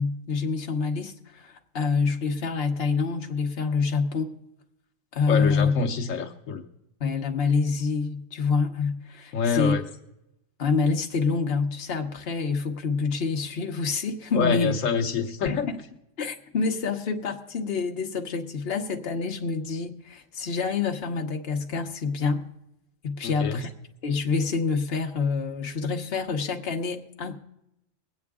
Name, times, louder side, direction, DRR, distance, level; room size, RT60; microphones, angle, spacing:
voice 1, 0.0-4.3 5.1-5.8 7.0-9.7 10.6-14.7 15.4-15.8 16.2-22.5 23.0-23.7 24.0-27.4, left 4 dB, 50° left, 3 dB, 1.2 m, -27 dB
voice 2, 5.3-6.6 9.3-9.8 14.3-15.7 23.2-23.6, left 6 dB, 80° left, 4 dB, 1.2 m, -26 dB
21.0 x 8.7 x 3.6 m, 0.85 s
omnidirectional pair, 1.4 m